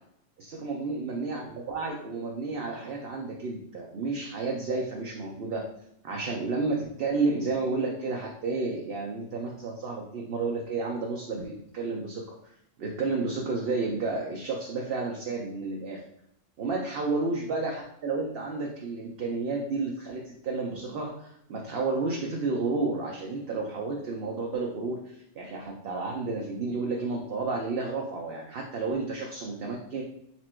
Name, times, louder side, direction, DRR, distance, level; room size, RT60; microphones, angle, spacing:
voice 1, 0.4-5.7 6.0-12.4 12.8-16.0 16.6-30.0, right 3 dB, 55° right, -1 dB, 0.8 m, -31 dB
4.3 x 2.5 x 4.3 m, 0.74 s
omnidirectional pair, 1.4 m